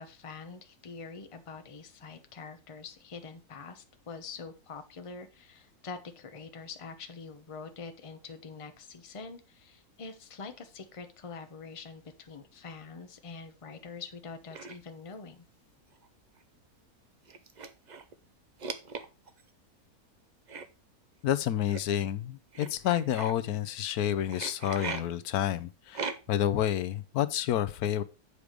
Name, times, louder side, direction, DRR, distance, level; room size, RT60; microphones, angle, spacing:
voice 1, 0.0-15.4, left 4 dB, 25° left, 0.8 m, -45 dB
sound 1, 14.5-14.8 15.9-16.1 16.4-16.5 17.3-18.1 18.6-19.4 20.5-20.6 21.7-21.8 22.5-23.3 24.3-25.0 25.9-26.4, right 5 dB, 40° right, 0.7 m, -38 dB
voice 2, 21.2-28.0, left 11 dB, 80° left, 1.1 m, -29 dB
8.3 x 4.8 x 5.1 m
omnidirectional pair, 1.6 m